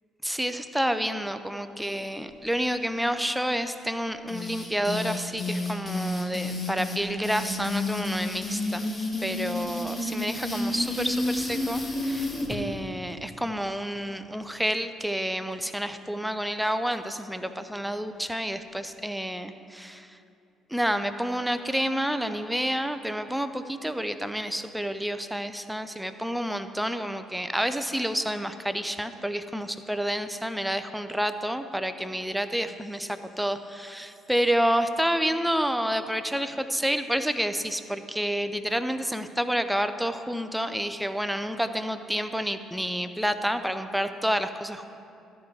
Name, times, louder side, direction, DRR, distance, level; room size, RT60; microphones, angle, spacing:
voice 1, 0.2-8.9 9.2-20.2 20.7-44.9, equal, 5° right, 9 dB, 0.6 m, -29 dB
sound 1, 4.3-12.6, left 2 dB, 25° left, 1.6 m, -30 dB
13.5 x 4.6 x 7.2 m, 2.6 s
hypercardioid pair, 50°, 0 cm